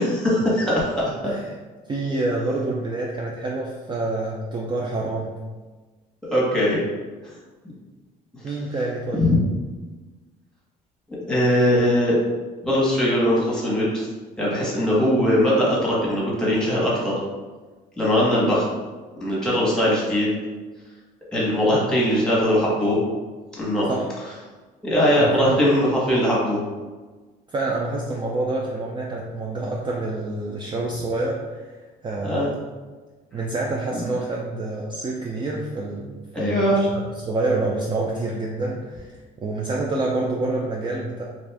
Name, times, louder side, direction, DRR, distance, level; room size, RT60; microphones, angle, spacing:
voice 1, 0.0-1.3 6.2-6.8 9.2-9.3 11.1-12.2 12.6-14.1 14.4-17.1 18.0-18.6 19.2-20.3 21.3-23.0 23.6-23.9 24.8-26.6 32.2-32.5 33.9-34.0 36.3-36.8, equal, 5° left, -6 dB, 1.1 m, -20 dB
voice 2, 1.9-5.3 8.4-9.3 23.9-24.1 25.2-25.6 27.5-31.8 32.0-32.6 33.3-41.2, right 2 dB, 30° right, -2 dB, 0.4 m, -27 dB
2.5 x 2.4 x 3.3 m, 1.3 s
cardioid pair, 110°, 17 cm